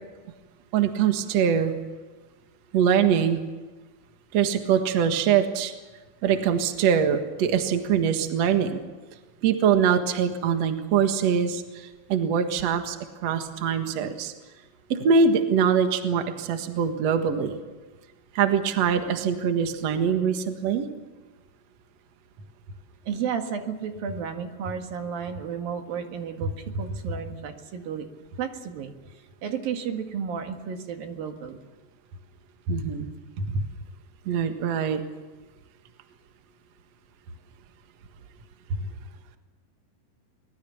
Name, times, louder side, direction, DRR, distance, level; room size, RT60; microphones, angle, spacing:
voice 1, 0.7-1.7 2.7-3.4 4.3-5.7 6.2-8.8 9.4-14.3 14.9-17.6 18.3-20.9 32.7-33.1 33.4-33.6 34.3-35.0 38.8-38.9, right 7 dB, 55° right, 6 dB, 2.5 m, -23 dB
voice 2, 23.1-28.1 28.4-28.9 29.4-31.6, right 7 dB, 80° right, 5 dB, 3.7 m, -32 dB
24.0 x 21.0 x 7.2 m, 1.2 s
omnidirectional pair, 4.1 m